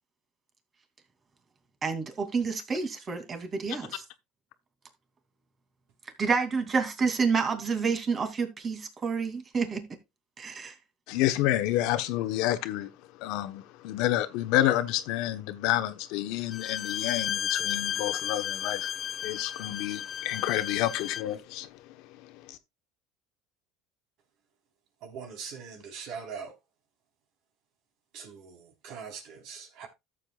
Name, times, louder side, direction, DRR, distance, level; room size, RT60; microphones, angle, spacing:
voice 1, 1.8-4.0 6.2-9.9 10.4-10.7, right 5 dB, 30° right, 2.7 m, -29 dB
voice 2, 11.1-22.6, left 14 dB, 70° left, 1.0 m, -29 dB
Bowed string instrument, 16.5-21.3, left 9 dB, 40° left, 0.5 m, -33 dB
voice 3, 25.0-26.5 28.1-29.9, right 6 dB, 60° right, 4.0 m, -42 dB
13.5 x 7.7 x 2.4 m
supercardioid pair, 110°, 0 cm